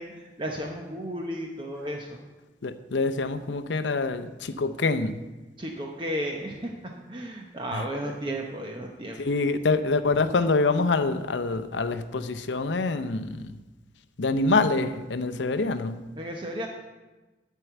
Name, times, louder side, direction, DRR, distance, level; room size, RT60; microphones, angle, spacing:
voice 1, 0.0-2.2 5.6-6.7 7.1-9.2 16.2-16.7, equal, 25° right, 1 dB, 0.8 m, -33 dB
voice 2, 2.6-5.2 7.7-7.8 9.2-13.6 14.2-16.0, left 3 dB, 85° left, 11 dB, 0.6 m, -26 dB
11.0 x 4.6 x 8.1 m, 1.2 s
head